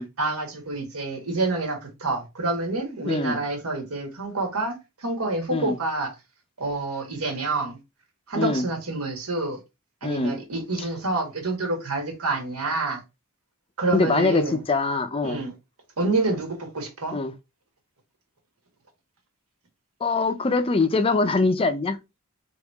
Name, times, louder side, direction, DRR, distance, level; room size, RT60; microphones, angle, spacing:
voice 1, 0.2-6.1 6.6-7.8 8.3-9.6 10.0-13.0 13.8-14.6 15.2-15.5 16.0-17.2, right 3 dB, 85° right, 1.6 m, -28 dB
voice 2, 3.1-3.4 5.5-5.8 8.3-8.7 10.0-10.4 10.8-10.9 13.9-15.4 17.1-17.3 20.0-22.0, left 3 dB, 25° left, 0.5 m, -23 dB
3.6 x 3.1 x 4.6 m
head